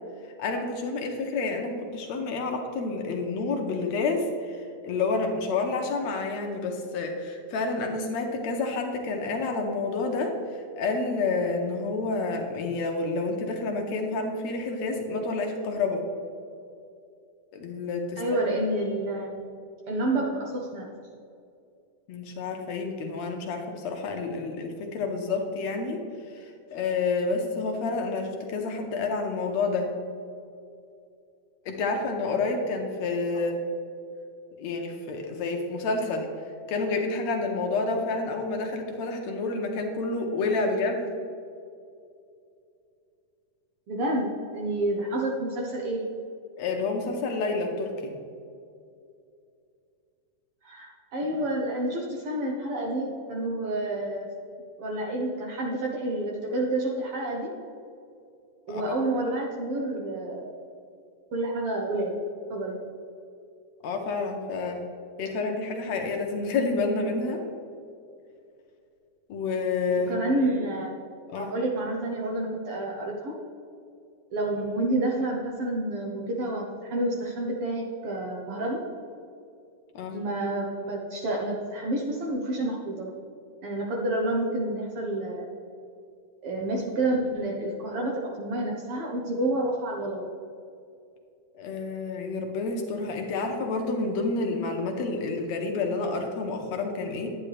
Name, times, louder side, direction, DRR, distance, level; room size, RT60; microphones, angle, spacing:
voice 1, 0.4-10.4 10.8-16.0 17.5-18.5 22.1-26.0 26.3-29.9 31.7-33.6 34.6-36.3 36.7-41.1 46.6-48.2 58.7-58.9 63.8-64.9 65.2-67.4 69.3-70.2 71.3-71.5 80.0-80.2 91.5-97.4, left 3 dB, 70° left, 3 dB, 2.0 m, -29 dB
voice 2, 18.2-19.4 19.9-20.9 43.9-46.0 50.6-54.3 54.8-57.5 58.7-60.5 61.3-62.2 62.5-62.8 70.1-70.9 71.3-73.3 74.3-78.8 80.1-83.1 83.6-85.5 86.4-90.2, right 1 dB, 65° right, -1 dB, 1.6 m, -29 dB
10.0 x 10.0 x 3.3 m, 2.5 s
omnidirectional pair, 3.5 m